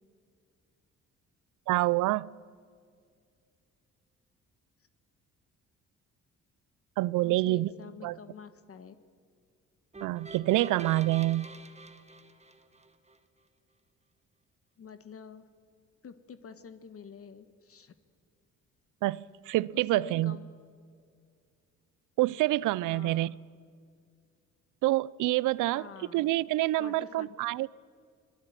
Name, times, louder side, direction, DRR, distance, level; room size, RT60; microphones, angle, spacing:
voice 1, 1.7-2.3 7.0-7.7 8.0-8.2 10.0-11.5 19.0-20.4 22.2-23.3 24.8-27.7, right 17 dB, 90° right, 0.5 m, -27 dB
voice 2, 7.2-8.9 14.8-15.4 16.0-17.9 19.7-20.5 22.9-23.4 25.7-26.3 26.8-27.3, left 6 dB, 50° left, 1.4 m, -47 dB
sound 1, 9.9-13.2, right 3 dB, 20° right, 1.6 m, -48 dB
25.0 x 18.0 x 9.1 m
cardioid pair, 90°, 30 cm